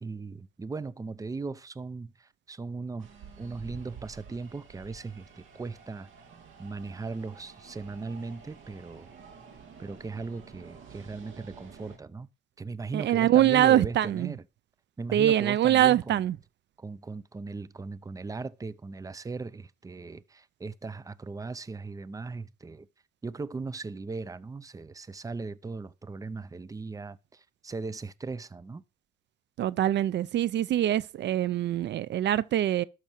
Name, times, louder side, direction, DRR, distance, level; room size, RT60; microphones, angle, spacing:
voice 1, 0.0-3.1 3.4-6.1 6.6-9.1 9.8-12.3 12.6-14.4 15.0-16.2 16.8-22.9 23.2-28.8, right 4 dB, 15° right, 0.6 m, -38 dB
sound 1, 3.0-12.0, right 6 dB, 80° right, 2.4 m, -50 dB
voice 2, 12.9-14.3 15.1-16.4 29.6-32.8, right 12 dB, 65° right, 0.5 m, -24 dB
12.5 x 6.2 x 4.5 m
cardioid pair, 90°, 20 cm